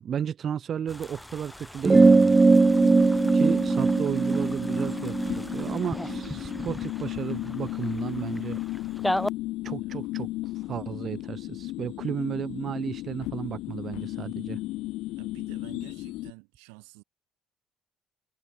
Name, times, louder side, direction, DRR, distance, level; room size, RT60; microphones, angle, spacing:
voice 1, 0.0-2.4 3.3-8.6 9.6-14.6, right 8 dB, 55° right, 5.3 m, -33 dB
sound 1, 0.9-9.3, left 1 dB, 5° left, 5.7 m, -37 dB
sound 2, 1.8-6.7, right 3 dB, 25° right, 0.4 m, -20 dB
sound 3, 2.5-16.3, left 18 dB, 75° left, 1.4 m, -35 dB
voice 2, 15.1-17.0, right 40 dB or more, 80° right, 6.5 m, -50 dB
hypercardioid pair, 60°, 0 cm